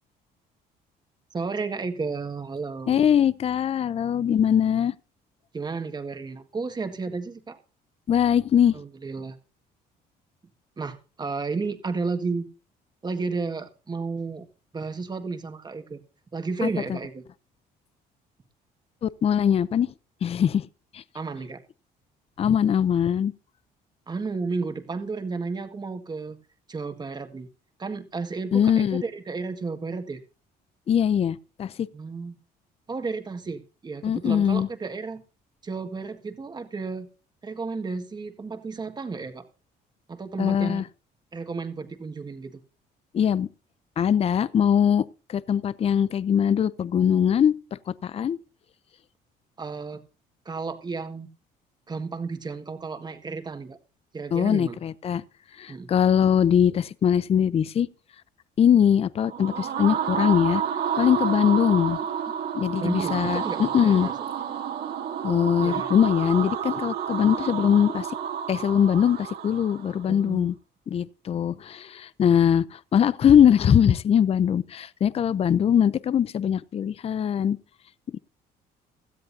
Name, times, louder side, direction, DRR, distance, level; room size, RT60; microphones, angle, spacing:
voice 1, 1.3-3.0 5.5-7.6 8.7-9.3 10.8-12.5 13.0-14.5 14.7-16.0 16.3-17.2 21.1-21.6 24.1-26.4 26.7-27.5 27.8-30.2 31.9-32.3 32.9-35.2 35.6-37.1 37.4-39.4 40.1-40.8 41.3-42.6 49.6-50.0 50.4-51.3 51.9-53.8 54.1-54.8 55.7-55.9 62.8-64.1 65.6-65.9 70.1-70.5, right 4 dB, 25° right, 1.7 m, -32 dB
voice 2, 2.9-4.9 8.1-8.8 16.6-17.0 19.0-19.9 20.2-20.7 20.9-21.0 22.4-23.3 28.5-29.0 30.9-31.9 34.0-34.7 40.4-40.8 43.1-43.5 44.0-48.4 54.3-55.2 55.6-57.9 58.6-60.6 61.0-62.0 62.5-64.1 65.2-68.1 68.5-70.5 70.9-77.6 78.1-78.2, left 8 dB, 35° left, 0.5 m, -22 dB
sound 1, 59.2-70.1, right 8 dB, 65° right, 2.5 m, -30 dB
17.0 x 13.0 x 2.7 m
cardioid pair, 110°, 17 cm